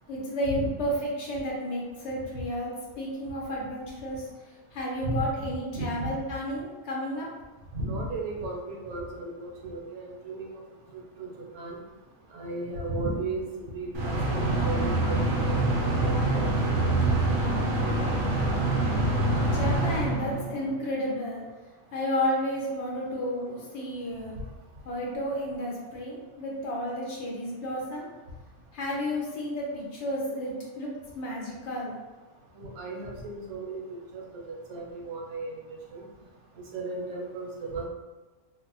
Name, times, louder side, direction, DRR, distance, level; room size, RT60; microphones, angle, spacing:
voice 1, 0.1-7.3 19.4-21.4 21.9-24.3 24.8-28.1 28.7-32.0, equal, 60° left, -3 dB, 0.9 m, -32 dB
voice 2, 5.4-6.1 7.7-10.6 11.2-11.3 11.5-11.8 12.3-17.2 17.4-18.2 32.6-33.8 34.1-34.2 34.5-35.5 35.9-36.0 36.7-37.8, right 2 dB, 85° right, -2 dB, 1.2 m, -35 dB
sound 1, 13.9-20.8, right 2 dB, 65° right, 1.0 m, -25 dB
3.2 x 2.1 x 2.9 m, 1.2 s
omnidirectional pair, 1.5 m